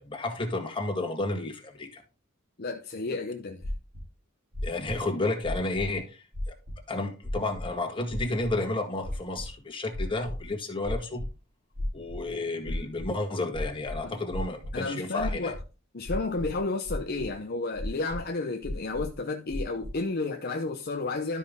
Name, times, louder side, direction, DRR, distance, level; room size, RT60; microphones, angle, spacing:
voice 1, 0.0-2.0 4.6-6.5 6.9-11.3 11.9-15.5, left 2 dB, 25° left, 1.7 m, -31 dB
voice 2, 2.6-3.7 14.0-14.1 14.7-15.6 15.9-21.4, left 3 dB, 45° left, 0.7 m, -32 dB
sound 1, 3.6-4.0 4.5-5.0 5.4-6.0 6.3-6.8 7.2-7.7 8.1-8.5 9.0-9.5 9.9-10.5 10.8-11.3 11.7-12.3 12.6-13.1 13.5-14.7 15.2-15.6 16.1-16.6 16.9-17.3 17.7-18.2 18.6-19.2 19.5-19.9, left 1 dB, 80° right, 3.6 m, -34 dB
12.0 x 5.4 x 3.6 m
head